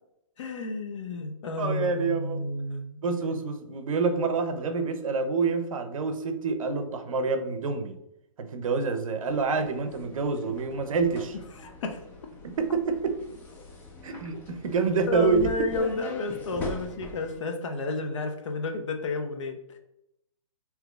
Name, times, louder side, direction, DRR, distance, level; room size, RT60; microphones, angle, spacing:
voice 1, 0.4-3.0 11.6-12.0 14.5-14.6 15.1-19.8, left 3 dB, 60° left, 5 dB, 0.6 m, -31 dB
voice 2, 1.6-2.4 3.0-8.0 8.4-11.4 12.4-13.2 14.0-15.5, right 4 dB, 70° right, 7 dB, 0.6 m, -27 dB
sound 1, 9.3-17.4, left 3 dB, 10° left, 0.3 m, -42 dB
3.6 x 2.8 x 2.3 m, 0.84 s
hypercardioid pair, 145°, 18 cm